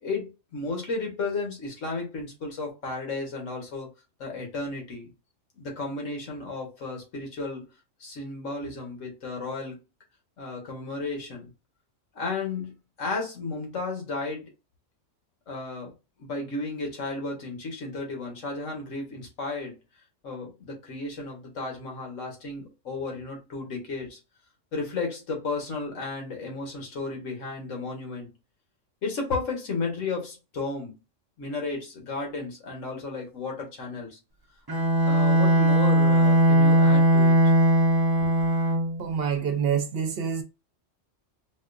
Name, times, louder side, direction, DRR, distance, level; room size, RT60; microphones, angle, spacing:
voice 1, 0.0-3.9 4.2-5.1 5.5-7.7 8.0-9.8 10.4-11.5 12.1-12.7 13.0-14.4 15.5-15.9 16.2-19.8 20.2-24.2 24.7-28.3 29.0-30.9 31.4-34.2 35.0-37.5 38.2-38.3, left 3 dB, 85° left, 1.6 m, -33 dB
Bowed string instrument, 34.7-39.0, right 1 dB, 30° right, 0.4 m, -19 dB
voice 2, 39.0-40.4, right 7 dB, 60° right, 0.8 m, -26 dB
4.2 x 2.3 x 2.5 m
omnidirectional pair, 1.3 m